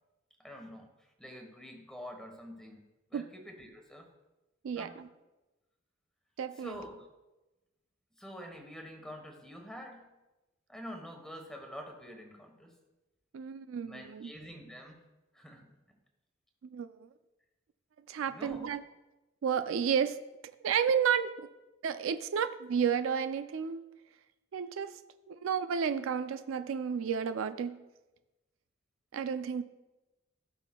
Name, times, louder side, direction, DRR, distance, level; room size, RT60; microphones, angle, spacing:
voice 1, 0.4-2.8 3.1-4.1 4.7-5.0 6.6-6.9 8.2-10.1 10.7-12.8 13.8-15.0 15.3-15.8 18.3-18.7, equal, 5° left, 3 dB, 1.1 m, -47 dB
voice 2, 4.6-5.1 6.4-6.8 13.3-14.3 16.6-17.1 18.1-18.8 19.4-20.2 20.4-21.3 21.8-23.8 24.5-25.0 25.3-27.8 29.1-29.6, right 7 dB, 70° right, 11 dB, 0.4 m, -32 dB
17.0 x 5.7 x 2.3 m, 1.0 s
head